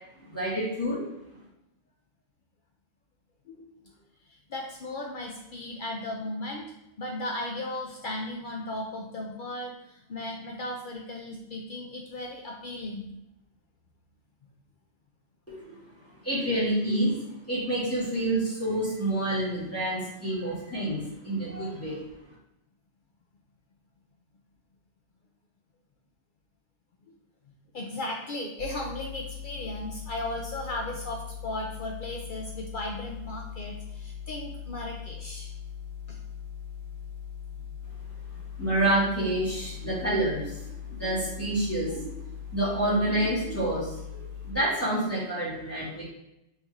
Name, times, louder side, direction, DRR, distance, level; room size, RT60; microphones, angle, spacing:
voice 1, 0.2-1.0 15.5-17.2 17.5-22.0 38.6-42.1 42.5-46.0, right 1 dB, 10° left, -9 dB, 1.7 m, -28 dB
voice 2, 4.3-13.1 27.1-27.2 27.5-35.5 36.1-36.2 37.5-37.6 38.4-38.5, left 1 dB, 55° left, 0 dB, 0.6 m, -36 dB
sound 1, 28.6-44.5, left 8 dB, 65° right, 0.9 m, -40 dB
4.4 x 3.3 x 3.5 m, 0.86 s
omnidirectional pair, 1.2 m